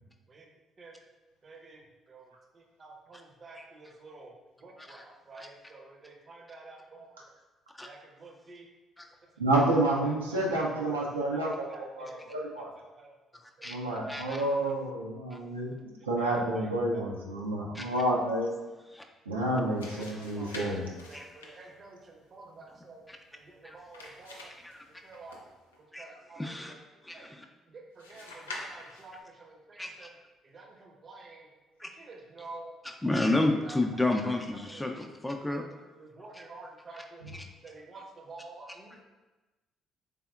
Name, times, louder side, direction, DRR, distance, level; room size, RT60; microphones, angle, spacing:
voice 1, 1.4-7.1 7.8-8.7 9.2-9.6 10.0-11.1 11.3-12.2 12.7-13.1 13.6-13.7 15.8-17.0 20.1-20.6 21.0-23.0 23.3-24.5 25.0-25.4 25.8-26.8 27.1-27.3 27.7-30.2 30.4-31.5 31.8-32.7 33.3-33.8 34.2-34.9 35.4-35.7 36.0-37.3 37.6-39.0, right 3 dB, 40° right, 1 dB, 0.6 m, -50 dB
voice 2, 9.4-11.7 12.0-12.7 13.6-18.5 19.3-21.0, right 1 dB, 90° right, -3 dB, 0.4 m, -29 dB
voice 3, 14.1-14.5 15.3-15.4 17.7-17.8 18.9-19.0 21.1-21.3 23.1-23.2 23.6-23.8 24.6-24.8 25.9-26.0 26.4-26.7 27.0-27.4 29.8-29.9 31.8-31.9 33.0-35.6, left 2 dB, 10° left, 3 dB, 0.4 m, -30 dB
sound 1, 19.5-25.8 28.0-29.2, left 2 dB, 85° left, 0.3 m, -47 dB
3.4 x 3.4 x 2.3 m, 1.2 s
figure-of-eight pair, 45°, 0 cm